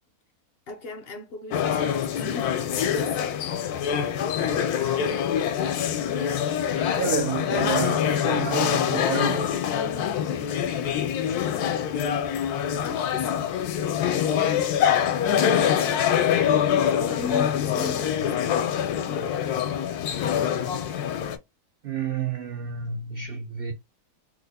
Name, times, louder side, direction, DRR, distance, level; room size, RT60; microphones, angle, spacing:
voice 1, 0.7-3.5 12.8-13.6 16.9-18.9, left 3 dB, 60° left, 0.6 m, -38 dB
sound 1, 1.5-21.4, left 9 dB, 80° left, 1.1 m, -25 dB
voice 2, 7.0-9.6 21.8-23.7, right 6 dB, 80° right, 0.5 m, -30 dB
3.3 x 2.0 x 3.4 m
omnidirectional pair, 1.6 m